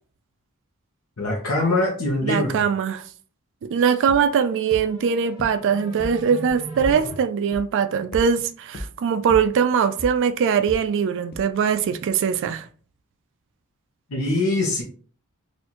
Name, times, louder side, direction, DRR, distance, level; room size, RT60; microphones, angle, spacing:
voice 1, 1.2-2.6 14.1-14.8, left 2 dB, 85° left, 0.9 m, -23 dB
voice 2, 2.2-3.0 3.6-12.7, right 7 dB, 60° right, 0.3 m, -21 dB
sound 1, 4.0-7.1, equal, 25° right, 1.3 m, -40 dB
sound 2, 4.1-4.2 4.7-4.8 5.4-5.5 6.0-6.1 6.5-6.9 7.5-7.6 8.1-8.2 8.7-8.8 9.3-9.4 10.0-10.1 10.7-10.8 11.3-11.4, equal, 45° left, 0.6 m, -32 dB
4.2 x 2.5 x 2.9 m
head